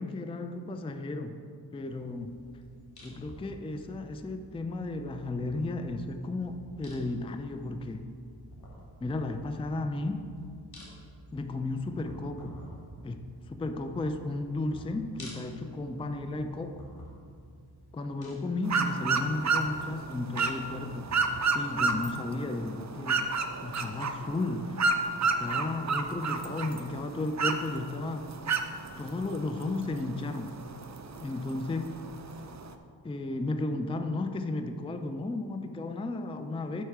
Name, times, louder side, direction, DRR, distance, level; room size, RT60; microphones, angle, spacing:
voice 1, 0.0-1.4 1.7-2.4 3.0-8.1 9.0-10.3 11.3-12.5 13.0-16.8 17.9-23.3 23.6-24.8 25.2-28.3 29.0-30.6 31.2-32.0 33.0-36.8, left 2 dB, 15° left, 7 dB, 0.4 m, -34 dB
sound 1, 1.8-21.4, equal, 55° left, 2.0 m, -51 dB
sound 2, 18.6-32.7, right 4 dB, 40° right, 0.6 m, -32 dB
7.9 x 4.5 x 5.8 m, 2.3 s
wide cardioid pair, 65°, 46 cm